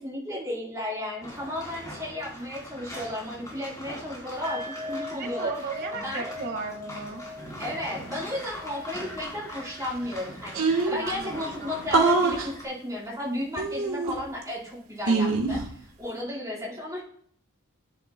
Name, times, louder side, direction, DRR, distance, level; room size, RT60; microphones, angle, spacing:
voice 1, 0.0-5.5 6.0-6.3 7.6-17.0, left 1 dB, 15° right, -6 dB, 4.0 m, -34 dB
sound 1, 1.2-12.6, left 1 dB, 15° left, 3.1 m, -42 dB
sound 2, 4.4-11.6 11.9-12.1 12.5-12.6, left 2 dB, 35° right, 2.7 m, -41 dB
voice 2, 5.1-7.2 10.9-12.2, right 4 dB, 50° right, 3 dB, 1.8 m, -36 dB
sound 3, 9.9-10.0 10.2-10.3 10.5-11.1 11.9-12.5 13.6-14.4 15.1-15.6, right 3 dB, 80° right, 1.4 m, -23 dB
10.5 x 10.0 x 2.2 m, 0.62 s
head